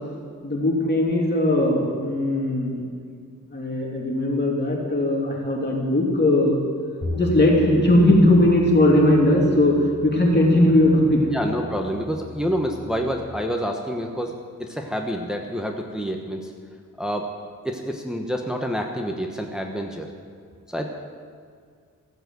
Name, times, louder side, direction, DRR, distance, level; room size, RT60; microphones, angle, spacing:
voice 1, 0.4-2.8 3.5-6.6 7.2-9.8 10.0-11.2, left 1 dB, 30° left, -2 dB, 3.0 m, -19 dB
sound 1, 7.0-13.3, left 4 dB, 50° left, 4.6 m, -36 dB
voice 2, 11.3-16.5 17.0-17.3 17.6-20.1 20.7-20.9, equal, ahead, 2 dB, 1.2 m, -28 dB
15.5 x 7.8 x 7.8 m, 2.1 s
wide cardioid pair, 70°, 32 cm